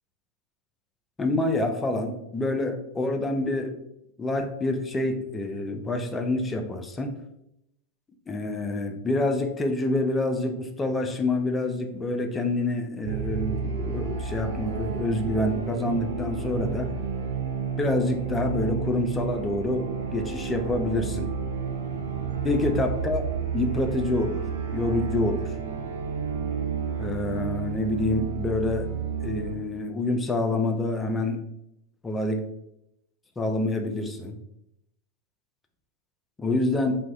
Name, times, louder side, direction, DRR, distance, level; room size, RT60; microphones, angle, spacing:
voice 1, 1.2-3.7 4.2-7.2 8.3-16.9 17.8-21.3 22.4-23.3 23.5-24.4 24.7-25.5 27.0-28.9 29.2-31.4 32.0-32.4 33.4-34.3 36.4-37.0, left 2 dB, 15° left, 5 dB, 0.4 m, -27 dB
sound 1, 13.1-29.6, right 6 dB, 60° right, 0.3 m, -31 dB
2.5 x 2.3 x 3.0 m, 0.81 s
figure-of-eight pair, 90°, 0 cm